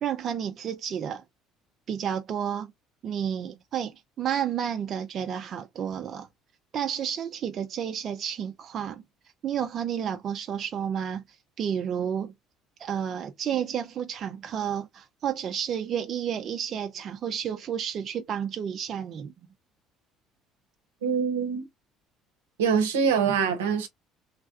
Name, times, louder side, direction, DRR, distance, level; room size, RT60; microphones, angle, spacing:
voice 1, 0.0-1.2 1.9-2.7 3.0-6.3 6.7-9.0 9.4-11.2 11.6-12.3 12.8-19.3, right 8 dB, 50° right, 0.4 m, -31 dB
voice 2, 21.0-21.7 22.6-23.9, right 6 dB, 85° right, 0.7 m, -24 dB
3.2 x 2.2 x 2.6 m
hypercardioid pair, 65°, 0 cm